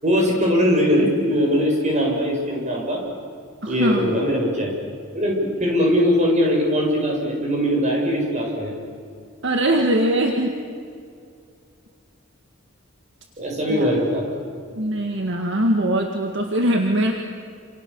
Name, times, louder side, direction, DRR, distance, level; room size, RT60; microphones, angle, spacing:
voice 1, 0.0-3.0 3.7-4.7 5.1-8.7 13.4-14.2, equal, 35° right, -1 dB, 6.8 m, -21 dB
voice 2, 3.6-4.1 9.4-10.6 13.7-13.9 14.8-17.1, right 1 dB, 60° right, 3 dB, 1.9 m, -21 dB
28.0 x 28.0 x 7.1 m, 2.3 s
head